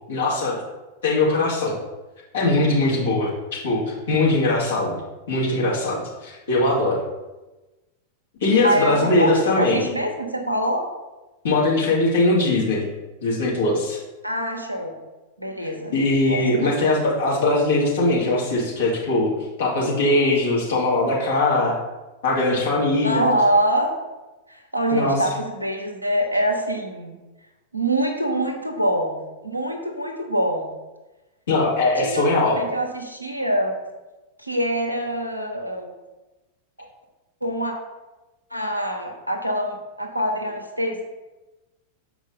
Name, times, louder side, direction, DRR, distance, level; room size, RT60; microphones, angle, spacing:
voice 1, 0.1-0.6 1.0-1.7 2.3-5.0 5.3-7.0 8.4-9.8 11.4-12.9 13.2-14.0 15.6-19.3 19.6-21.8 22.2-23.3 24.9-25.2 31.5-32.6, left 2 dB, 65° left, -5 dB, 2.5 m, -21 dB
voice 2, 8.6-10.9 14.2-15.0 15.4-15.9 16.3-16.7 23.0-23.9 24.5-27.1 27.7-30.7 32.0-33.7 34.4-35.9 37.4-37.7 38.5-41.0, right 1 dB, 90° right, 2 dB, 1.0 m, -24 dB
7.2 x 4.8 x 4.0 m, 1.1 s
figure-of-eight pair, 90°, 0 cm